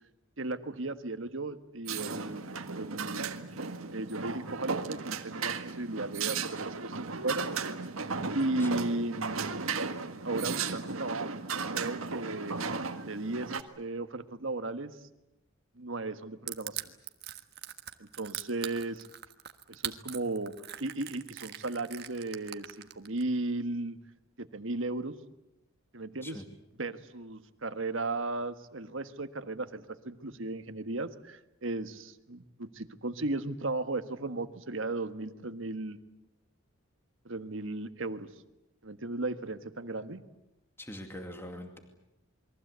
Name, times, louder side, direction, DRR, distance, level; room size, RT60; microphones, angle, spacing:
voice 1, 0.4-3.3 3.9-7.4 8.3-9.6 10.2-11.4 11.7-12.6 13.0-15.0 15.8-16.9 18.0-19.0 19.7-24.0 24.4-25.2 25.9-26.4 26.8-36.0 37.2-38.3 38.8-40.2, right 2 dB, 65° right, 10 dB, 1.5 m, -35 dB
sound 1, 1.9-13.6, right 4 dB, 85° right, 1.7 m, -35 dB
Crushing, 16.5-23.2, right 11 dB, 50° right, 1.4 m, -40 dB
voice 2, 40.8-41.8, left 1 dB, 10° left, 4 dB, 2.3 m, -43 dB
28.5 x 22.5 x 8.2 m, 0.88 s
head